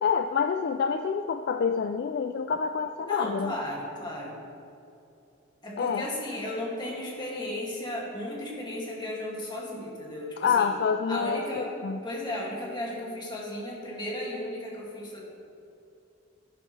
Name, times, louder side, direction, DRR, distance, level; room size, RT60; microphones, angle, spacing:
voice 1, 0.0-3.5 5.8-6.1 10.4-12.0, left 6 dB, 55° left, 8 dB, 0.3 m, -27 dB
voice 2, 3.1-4.4 5.6-10.7 11.1-11.7 12.0-15.2, left 1 dB, 25° left, -4 dB, 2.1 m, -35 dB
11.0 x 11.0 x 3.2 m, 2.7 s
head